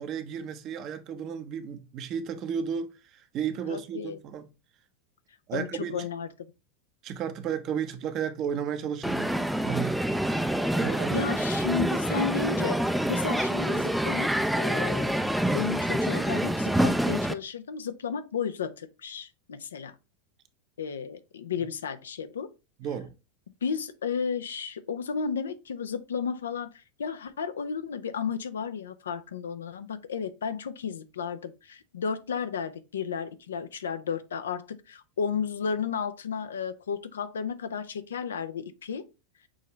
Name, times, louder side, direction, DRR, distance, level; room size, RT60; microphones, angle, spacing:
voice 1, 0.0-4.5 5.5-6.1 7.0-10.0 10.7-11.3 22.8-23.1, right 8 dB, 45° right, 0.7 m, -33 dB
voice 2, 3.7-4.2 5.5-6.3 11.1-12.8 13.1-15.1 15.4-19.9 20.8-22.5 23.6-39.1, left 6 dB, 80° left, 0.5 m, -33 dB
Crowd, 9.0-17.3, equal, ahead, 0.4 m, -26 dB
6.2 x 2.7 x 3.1 m
hypercardioid pair, 95°, 0 cm